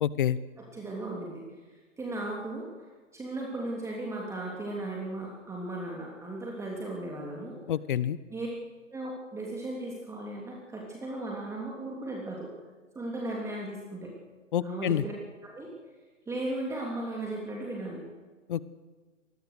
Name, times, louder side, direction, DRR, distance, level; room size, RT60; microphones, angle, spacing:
voice 1, 0.0-0.4 7.7-8.2 14.5-15.0 18.5-18.6, left 10 dB, 40° left, 18 dB, 1.1 m, -27 dB
voice 2, 0.6-1.4 2.0-2.7 3.1-7.6 8.3-8.5 8.9-12.5 12.9-14.1 14.6-15.1 15.4-15.7 16.3-18.0, right 2 dB, 5° right, -2 dB, 3.3 m, -36 dB
28.0 x 20.5 x 6.6 m, 1.3 s
figure-of-eight pair, 120°, 39 cm